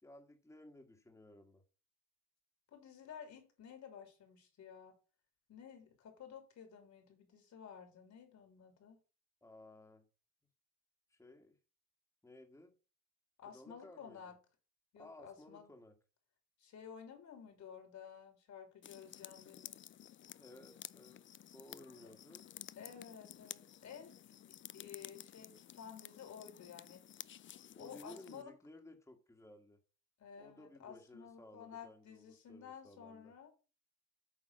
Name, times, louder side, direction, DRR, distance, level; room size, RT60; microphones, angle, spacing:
voice 1, 0.0-1.6 9.4-10.1 11.1-11.6 12.2-12.7 13.5-14.3 15.0-16.0 20.4-21.3 21.5-22.5 27.8-29.8 30.4-33.3, left 1 dB, 10° left, 1.7 m, -57 dB
voice 2, 2.7-4.9 5.5-9.0 13.4-14.4 14.9-15.7 16.6-19.9 22.8-24.3 24.7-27.0 27.8-28.5 30.2-33.5, left 7 dB, 65° left, 3.1 m, -53 dB
sound 1, 18.8-28.4, left 11 dB, 40° left, 0.4 m, -53 dB
8.7 x 3.5 x 6.4 m
cardioid pair, 90°, 30 cm